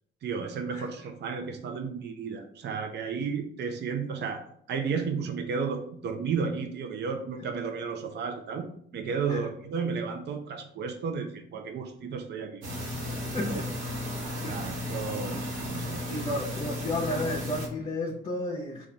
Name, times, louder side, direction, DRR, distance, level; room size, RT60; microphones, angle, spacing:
voice 1, 0.2-8.7 8.9-12.6 13.4-13.6 14.5-16.4, right 5 dB, 60° right, 5 dB, 0.6 m, -33 dB
sound 1, 12.6-17.7, left 1 dB, 85° right, 1.2 m, -34 dB
voice 2, 13.3-13.7 14.4-14.5 16.0-18.8, left 1 dB, 30° left, -2 dB, 0.7 m, -32 dB
3.9 x 2.5 x 4.4 m, 0.63 s
cardioid pair, 90°, 20 cm